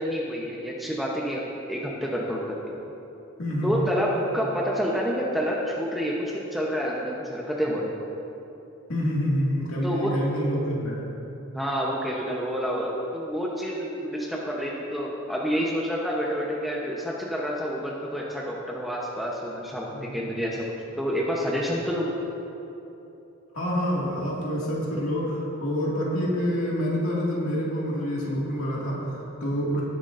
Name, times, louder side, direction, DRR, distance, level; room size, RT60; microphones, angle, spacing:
voice 1, 0.0-1.4 1.7-2.7 3.6-8.0 9.8-10.1 11.5-19.9 20.1-20.6 21.0-22.1, equal, ahead, -4 dB, 0.9 m, -28 dB
voice 2, 3.4-3.9 8.9-11.0 19.9-20.2 23.5-29.8, equal, 80° left, -5 dB, 2.2 m, -27 dB
18.0 x 9.5 x 2.6 m, 3.0 s
head